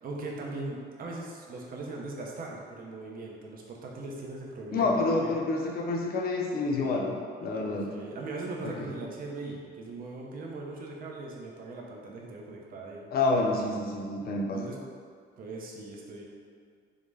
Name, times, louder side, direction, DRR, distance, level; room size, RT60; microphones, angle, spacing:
voice 1, 0.0-5.3 7.6-13.1 14.5-14.8 15.4-16.2, right 3 dB, 45° right, -2 dB, 0.4 m, -40 dB
voice 2, 4.7-7.2 7.4-7.9 8.6-8.9 13.1-14.7, left 3 dB, 50° left, 1 dB, 0.4 m, -28 dB
2.2 x 2.0 x 3.1 m, 2.1 s
cardioid pair, 90°, 20 cm